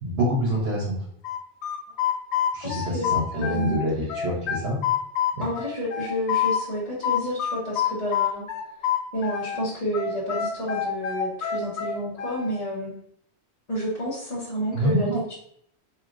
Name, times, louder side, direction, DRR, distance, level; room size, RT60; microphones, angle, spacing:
voice 1, 0.0-1.1 2.5-4.8 5.3-5.5 14.7-15.2, equal, 65° right, -4 dB, 1.1 m, -26 dB
sound 1, 1.2-3.8 4.1-6.6 7.0-9.6 9.9-12.6, left 9 dB, 90° left, 1.0 m, -26 dB
voice 2, 2.6-3.8 5.4-8.4 9.1-12.9 13.7-15.3, equal, 40° left, -7 dB, 1.1 m, -30 dB
4.7 x 3.2 x 2.5 m, 0.68 s
omnidirectional pair, 1.1 m